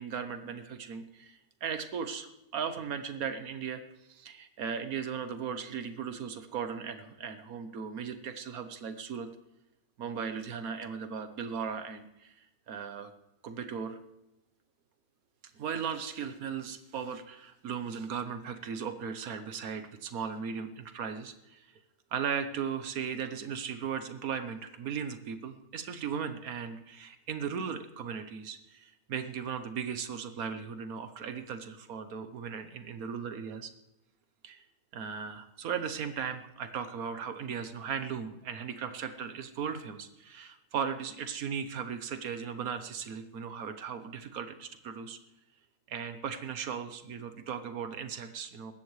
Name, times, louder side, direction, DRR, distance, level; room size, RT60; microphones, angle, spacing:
voice 1, 0.0-9.3 10.0-13.1 13.4-14.0 15.5-21.8 22.1-33.7 34.4-34.6 34.9-45.2 45.9-48.7, right 7 dB, 85° right, 9 dB, 1.4 m, -37 dB
20.5 x 16.0 x 3.2 m, 0.91 s
omnidirectional pair, 1.5 m